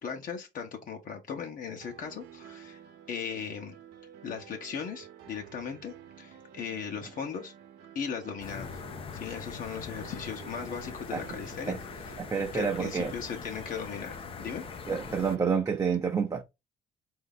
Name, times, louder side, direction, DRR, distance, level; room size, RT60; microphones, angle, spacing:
voice 1, 0.0-2.8 3.1-3.8 4.2-7.5 7.9-8.8 9.1-12.2 12.5-14.6, left 6 dB, 55° left, 0.9 m, -38 dB
sound 1, 1.8-15.5, right 9 dB, 80° right, 0.8 m, -50 dB
sound 2, 8.4-15.4, left 7 dB, 35° left, 0.5 m, -42 dB
voice 2, 12.2-13.1 14.9-16.4, right 6 dB, 20° right, 0.5 m, -28 dB
3.9 x 2.7 x 3.7 m
cardioid pair, 110°, 17 cm